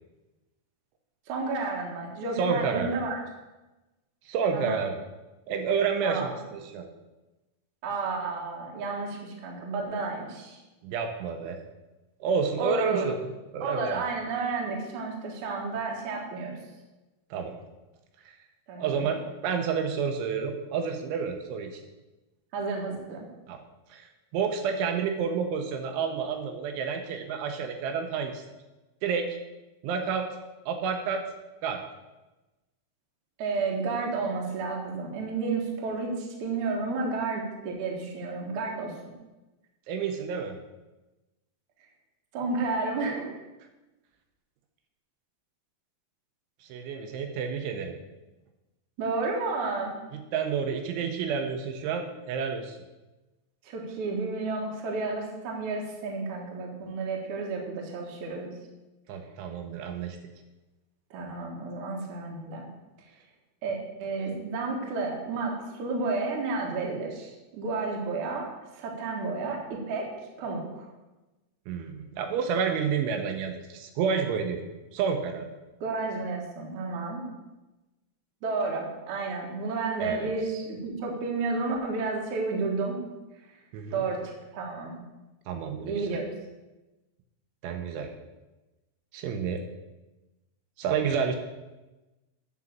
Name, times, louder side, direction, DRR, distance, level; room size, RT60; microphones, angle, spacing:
voice 1, 1.3-3.2 4.5-4.8 6.0-6.3 7.8-10.6 12.6-13.1 13.6-16.6 18.7-19.2 22.5-23.3 33.4-38.9 42.3-43.4 49.0-49.9 53.6-58.5 61.1-62.7 63.6-70.9 75.8-77.2 78.4-83.0 83.9-84.9 85.8-86.2, right 3 dB, 60° right, -1 dB, 2.2 m, -31 dB
voice 2, 2.4-2.9 4.3-5.0 5.5-6.9 10.8-11.6 12.2-14.0 17.3-17.6 18.3-18.4 18.8-19.2 19.4-21.8 23.5-23.6 23.9-24.1 24.3-28.4 29.0-29.3 29.8-30.3 30.7-31.2 31.6-31.8 39.9-40.6 46.6-48.0 50.3-52.8 59.1-60.2 71.7-74.6 74.9-75.5 80.0-80.3 83.7-84.0 85.5-86.1 87.6-88.1 89.1-89.6 90.8-91.4, right 6 dB, 85° right, 5 dB, 3.1 m, -29 dB
9.7 x 5.1 x 7.3 m, 1.1 s
omnidirectional pair, 5.6 m